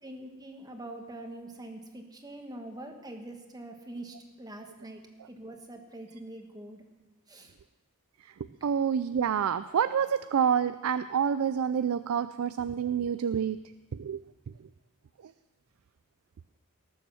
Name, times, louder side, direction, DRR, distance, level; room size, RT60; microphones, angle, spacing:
voice 1, 0.0-5.0 5.3-6.8 7.3-7.5, right 1 dB, 20° right, 4 dB, 1.5 m, -44 dB
voice 2, 8.6-13.6 13.9-14.2, right 7 dB, 85° right, 13 dB, 0.4 m, -28 dB
19.0 x 7.1 x 6.2 m, 1.1 s
head